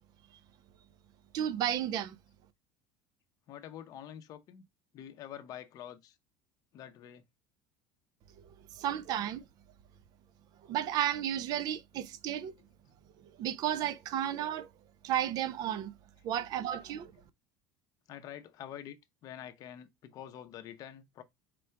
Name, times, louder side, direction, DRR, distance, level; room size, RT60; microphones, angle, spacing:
voice 1, 1.3-2.2 8.7-9.4 10.7-12.5 13.4-14.7 15.0-15.9 16.2-17.1, right 11 dB, 50° right, 0.4 m, -33 dB
voice 2, 3.5-4.7 4.9-6.2 6.7-7.2 8.9-9.3 12.3-12.4 16.3-17.1 18.1-19.0 19.2-21.2, left 10 dB, 50° left, 0.6 m, -47 dB
3.7 x 2.2 x 4.4 m
cardioid pair, 130°, 8 cm